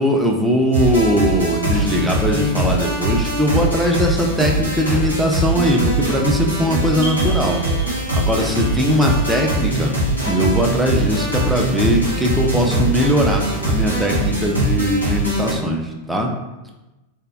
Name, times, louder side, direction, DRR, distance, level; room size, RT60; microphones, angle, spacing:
voice 1, 0.0-7.6 8.1-16.3, equal, 5° right, 0 dB, 0.4 m, -20 dB
sound 1, 0.7-15.5, right 1 dB, 85° right, 1.0 m, -21 dB
sound 2, 4.6-12.6, right 4 dB, 35° right, 1.2 m, -38 dB
sound 3, 7.0-11.5, right 2 dB, 65° right, 0.6 m, -38 dB
3.4 x 2.1 x 2.3 m, 1.0 s
figure-of-eight pair, 90°, 0 cm